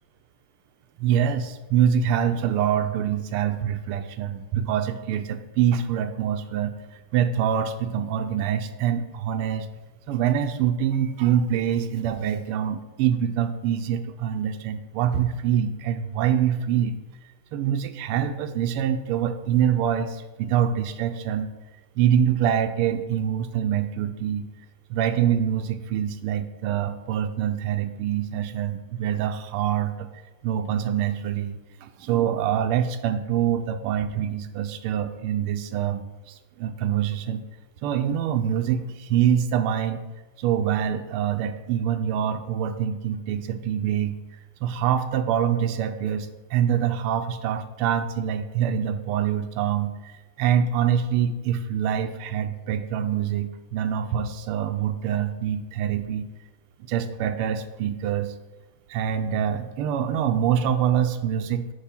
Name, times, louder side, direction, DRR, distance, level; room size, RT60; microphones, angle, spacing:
voice 1, 1.0-9.7 10.1-17.0 17.5-21.5 22.0-24.5 24.9-30.1 30.4-37.4 37.8-40.0 40.4-44.1 44.6-56.3 56.8-58.3 58.9-61.7, right 9 dB, 85° right, 9 dB, 1.5 m, -25 dB
8.2 x 3.0 x 5.8 m, 1.2 s
omnidirectional pair, 2.3 m